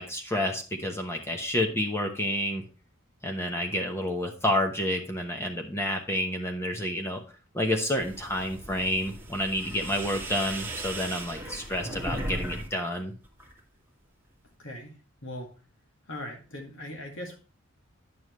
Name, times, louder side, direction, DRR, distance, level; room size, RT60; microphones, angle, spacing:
voice 1, 0.0-2.6 3.2-7.2 7.5-13.1, left 1 dB, 10° left, 2 dB, 0.9 m, -29 dB
sound 1, 8.0-12.7 13.0-13.6, right 1 dB, 10° right, 1.8 m, -37 dB
voice 2, 14.6-15.5 16.1-17.4, left 1 dB, 65° left, 2 dB, 2.1 m, -40 dB
9.5 x 7.1 x 3.1 m, 0.34 s
head